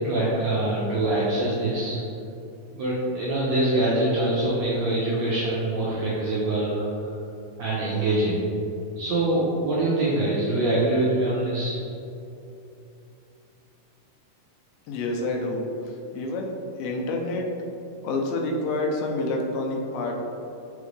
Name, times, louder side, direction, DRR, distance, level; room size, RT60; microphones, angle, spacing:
voice 1, 0.0-2.0 2.7-7.1 7.6-8.4 9.0-11.8, right 1 dB, 80° right, -8 dB, 1.5 m, -24 dB
voice 2, 14.9-15.7 16.1-16.5 16.8-17.4 18.0-20.1, left 2 dB, 80° left, 1 dB, 2.4 m, -27 dB
5.9 x 5.3 x 3.2 m, 2.7 s
omnidirectional pair, 4.3 m